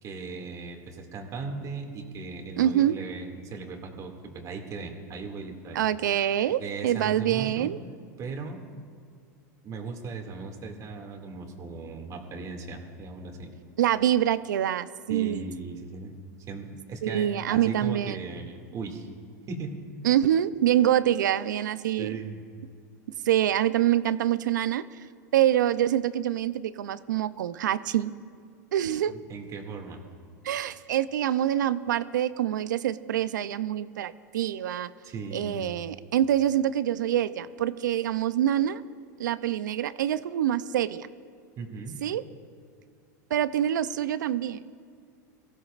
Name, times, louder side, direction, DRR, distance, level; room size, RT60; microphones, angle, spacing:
voice 1, 0.0-5.8 6.6-7.7 8.2-8.7 9.6-13.5 15.1-16.1 16.5-19.1 19.5-19.8 22.0-22.4 29.1-30.0 35.0-35.6 41.6-42.0, right 4 dB, 35° right, 3 dB, 2.3 m, -37 dB
voice 2, 2.6-3.0 5.7-7.8 13.8-15.4 17.0-18.2 20.0-22.2 23.2-25.1 25.3-28.1 28.7-29.1 30.4-34.9 35.3-38.8 39.2-41.1 42.0-42.2 43.3-44.6, right 11 dB, 85° right, 15 dB, 0.6 m, -25 dB
23.5 x 15.5 x 2.5 m, 2.2 s
hypercardioid pair, 115°, 10 cm